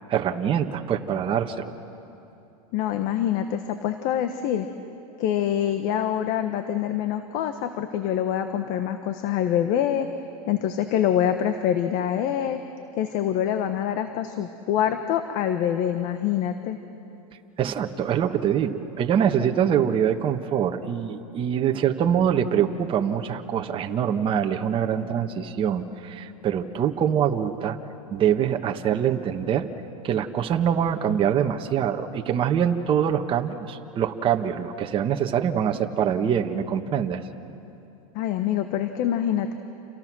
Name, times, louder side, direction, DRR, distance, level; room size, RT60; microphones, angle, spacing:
voice 1, 0.1-1.7 17.6-27.8 28.1-29.7 30.0-37.2, right 8 dB, 30° right, 5 dB, 1.4 m, -24 dB
voice 2, 2.7-4.7 5.2-10.1 10.5-12.6 13.0-16.8 38.1-39.5, left 10 dB, 50° left, 8 dB, 1.4 m, -25 dB
30.0 x 29.0 x 6.3 m, 2.8 s
supercardioid pair, 130°, 19 cm